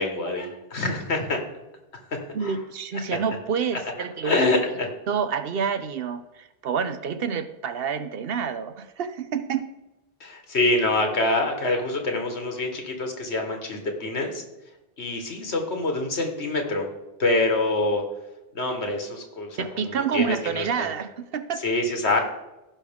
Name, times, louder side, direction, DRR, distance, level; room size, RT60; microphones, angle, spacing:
voice 1, 0.0-1.4 2.4-2.5 3.1-3.2 4.2-4.9 10.2-14.4 15.0-16.9 17.2-18.0 18.6-20.9 21.6-22.2, left 2 dB, 85° left, 3 dB, 1.9 m, -25 dB
voice 2, 2.3-4.4 5.1-9.7 19.6-21.7, right 6 dB, 65° right, 11 dB, 0.9 m, -28 dB
16.0 x 5.7 x 3.6 m, 0.98 s
omnidirectional pair, 1.1 m